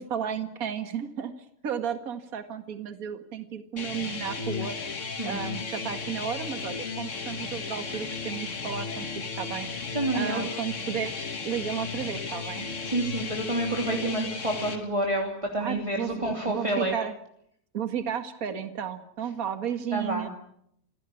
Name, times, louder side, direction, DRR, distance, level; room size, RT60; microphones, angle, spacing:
voice 1, 0.0-1.3 1.6-4.8 5.2-9.1 9.4-9.7 10.1-12.7 15.6-17.1 17.7-20.3, right 8 dB, 50° right, 8 dB, 1.0 m, -33 dB
sound 1, 3.8-14.8, left 5 dB, 85° left, 0.6 m, -35 dB
voice 2, 9.9-10.4 12.8-16.9 19.9-20.3, right 1 dB, 10° right, 0 dB, 2.3 m, -28 dB
28.0 x 17.0 x 8.6 m, 0.73 s
omnidirectional pair, 4.5 m